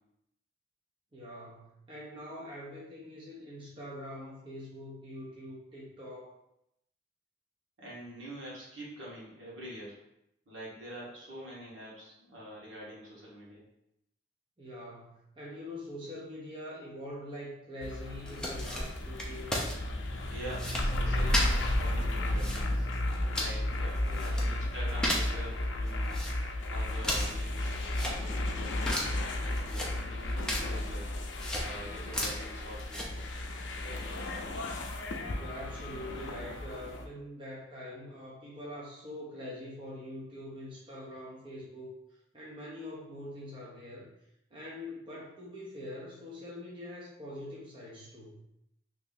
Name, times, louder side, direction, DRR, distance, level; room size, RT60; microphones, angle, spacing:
voice 1, 1.1-6.3 14.6-19.5 24.1-24.7 35.4-42.0 42.3-44.1 44.5-48.4, left 1 dB, 25° right, -6 dB, 0.8 m, -44 dB
voice 2, 7.8-10.0 10.5-13.7 20.3-22.9 23.3-26.2 26.7-29.0 29.4-31.1 31.6-33.2 33.8-34.1, right 1 dB, 75° right, -6 dB, 1.4 m, -45 dB
sound 1, 17.8-37.1, left 1 dB, 70° left, 0.5 m, -33 dB
sound 2, 18.2-33.5, left 1 dB, 5° left, 0.6 m, -38 dB
3.0 x 2.7 x 3.8 m, 0.79 s
head